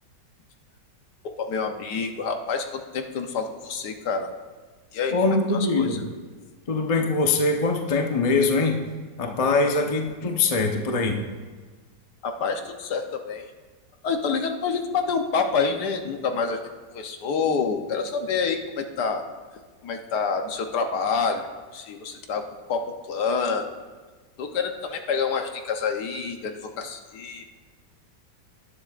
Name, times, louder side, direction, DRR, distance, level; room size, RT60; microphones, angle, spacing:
voice 1, 1.4-4.3 4.9-5.1 5.8-5.9 12.2-13.5 14.0-16.6 16.9-19.2 19.8-21.5 21.7-22.4 22.7-23.6 24.4-27.4, left 5 dB, 70° left, 5 dB, 1.3 m, -27 dB
voice 2, 5.1-6.0 6.7-8.8 9.2-11.2, left 3 dB, 30° left, 3 dB, 0.6 m, -22 dB
17.5 x 10.5 x 2.4 m, 1.4 s
omnidirectional pair, 1.9 m